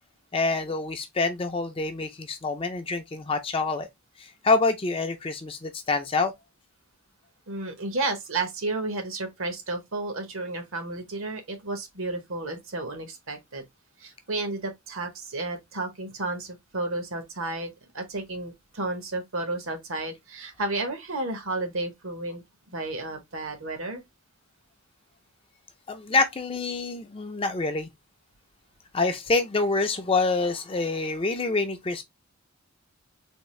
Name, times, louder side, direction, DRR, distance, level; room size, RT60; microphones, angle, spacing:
voice 1, 0.3-3.9 4.2-6.3 25.9-27.9 28.9-32.0, left 3 dB, 25° left, 0.4 m, -26 dB
voice 2, 7.5-13.7 14.0-24.0, right 2 dB, 65° right, 1.0 m, -32 dB
3.6 x 2.4 x 3.0 m
head